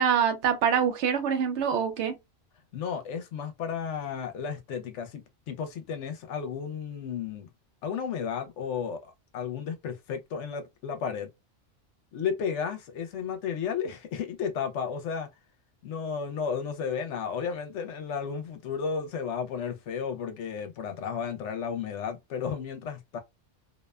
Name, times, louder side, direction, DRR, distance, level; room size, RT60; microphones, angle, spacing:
voice 1, 0.0-2.2, right 7 dB, 75° right, 0.9 m, -25 dB
voice 2, 2.7-7.5 7.8-11.3 12.1-15.3 15.8-23.2, left 6 dB, 75° left, 0.9 m, -33 dB
2.6 x 2.1 x 2.2 m
omnidirectional pair, 1.3 m